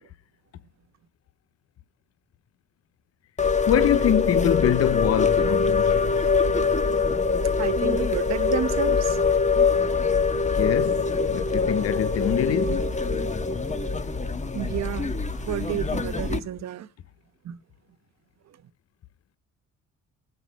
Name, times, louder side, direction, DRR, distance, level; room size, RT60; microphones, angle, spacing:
sound 1, 3.4-16.4, left 4 dB, 25° left, 1.5 m, -24 dB
voice 1, 3.7-6.3 10.5-12.9, left 10 dB, 55° left, 0.7 m, -25 dB
voice 2, 7.6-9.2 13.8-13.9 14.5-15.1 15.5-16.9 17.4-17.6, right 10 dB, 60° right, 1.0 m, -30 dB
17.5 x 8.0 x 6.2 m
cardioid pair, 90°, 30 cm